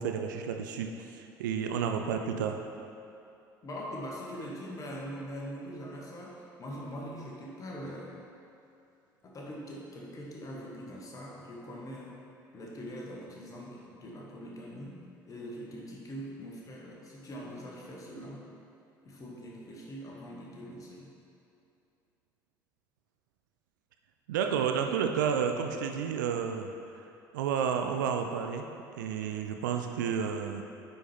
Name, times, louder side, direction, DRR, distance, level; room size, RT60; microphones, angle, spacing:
voice 1, 0.0-2.6 24.3-26.7 27.3-28.7 29.0-30.6, right 7 dB, 65° right, 5 dB, 0.4 m, -31 dB
voice 2, 3.6-8.2 9.2-12.2 12.5-15.0 15.3-18.5 19.0-21.1, equal, 30° left, -3 dB, 1.3 m, -42 dB
9.0 x 4.2 x 3.4 m, 2.7 s
figure-of-eight pair, 60°, 11 cm